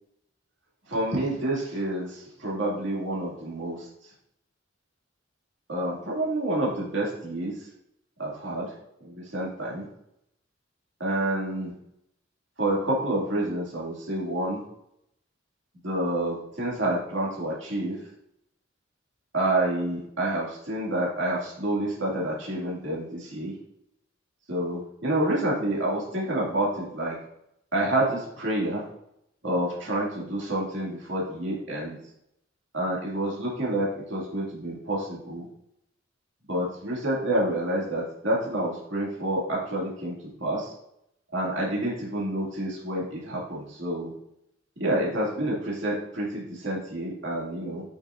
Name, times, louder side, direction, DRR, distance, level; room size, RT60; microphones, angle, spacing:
voice 1, 0.9-4.1 5.7-7.7 8.2-8.7 9.0-9.9 11.0-11.7 12.6-14.6 15.8-18.1 19.3-23.6 24.5-27.2 27.7-28.8 29.4-32.0 32.7-35.5 36.5-40.8 41.3-44.1 44.8-47.8, right 1 dB, 60° right, -5 dB, 2.3 m, -28 dB
8.6 x 6.0 x 2.6 m, 0.77 s
head